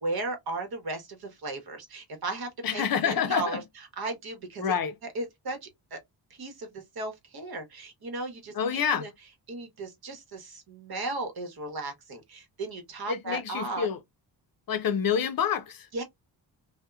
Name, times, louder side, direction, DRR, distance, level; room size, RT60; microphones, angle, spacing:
voice 1, 0.0-3.6 4.0-4.7 5.1-6.0 6.3-9.1 9.5-13.9 15.9-16.0, right 2 dB, 55° right, 1.0 m, -36 dB
voice 2, 2.6-3.6 4.6-4.9 8.5-9.1 13.1-14.0 14.7-15.9, left 7 dB, 50° left, 0.5 m, -27 dB
2.7 x 2.2 x 2.3 m
cardioid pair, 85°, 44 cm